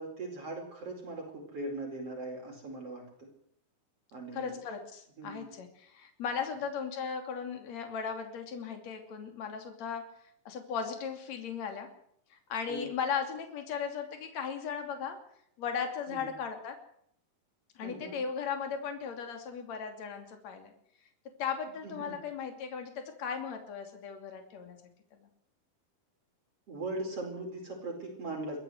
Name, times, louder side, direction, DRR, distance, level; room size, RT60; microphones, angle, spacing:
voice 1, 0.0-3.3 4.1-4.5 5.2-5.5 12.7-12.9 16.1-16.3 17.8-18.2 21.8-22.2 26.7-28.6, right 2 dB, 40° right, 1 dB, 5.5 m, -40 dB
voice 2, 4.3-10.0 10.5-11.9 12.3-15.2 15.6-16.8 17.8-20.7 21.4-24.8, left 6 dB, 50° left, 5 dB, 3.9 m, -37 dB
22.5 x 14.5 x 8.0 m, 0.67 s
omnidirectional pair, 4.1 m